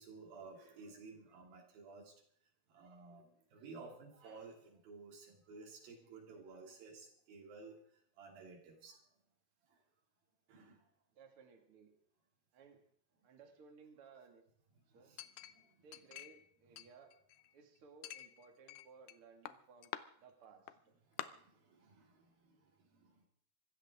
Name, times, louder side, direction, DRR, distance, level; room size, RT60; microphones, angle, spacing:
voice 1, 0.0-2.1 2.7-7.8 8.2-9.0 10.5-10.8 14.9-15.9 21.1-23.3, right 4 dB, 90° right, 1 dB, 4.7 m, -55 dB
voice 2, 11.1-11.9 12.5-12.8 13.2-14.4 14.9-15.1 15.8-17.2 17.5-21.0, right 5 dB, 40° right, 3 dB, 2.8 m, -60 dB
Chink clink, 15.2-16.5 16.8-17.5 18.0-19.2 19.5-20.0 20.7-20.8 21.2-21.3, left 13 dB, 75° left, 2.0 m, -48 dB
25.0 x 13.5 x 3.7 m, 0.63 s
omnidirectional pair, 4.0 m